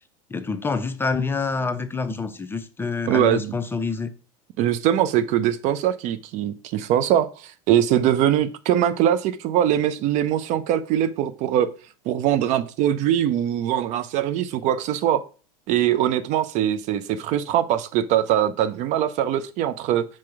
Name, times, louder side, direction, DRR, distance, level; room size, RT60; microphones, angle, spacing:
voice 1, 0.3-4.1, left 4 dB, 10° left, 0.6 m, -27 dB
voice 2, 3.1-3.5 4.6-11.7 12.1-15.2 15.7-20.0, right 11 dB, 40° right, 0.6 m, -22 dB
6.0 x 4.5 x 5.8 m
figure-of-eight pair, 80°, 19 cm